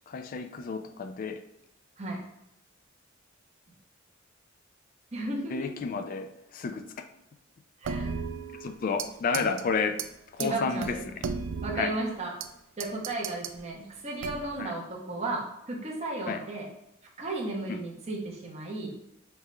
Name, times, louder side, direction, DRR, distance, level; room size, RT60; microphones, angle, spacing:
voice 1, 0.1-1.4 5.5-6.9 8.6-10.0 10.3-11.0 11.7-11.9 14.6-14.7 16.3-16.4 17.7-17.8, left 5 dB, 45° left, 8 dB, 0.3 m, -31 dB
voice 2, 5.1-5.7 7.8-8.1 9.3-9.6 10.4-11.1 11.6-12.3 12.8-16.7 17.2-18.9, right 2 dB, 30° right, -3 dB, 0.9 m, -34 dB
sound 1, 7.8-9.1 9.3-9.6 10.0-10.1 10.4-10.5 10.8-12.5 12.8-13.6 14.2-14.6, right 6 dB, 65° right, 0.3 m, -35 dB
5.4 x 2.4 x 3.2 m, 0.81 s
head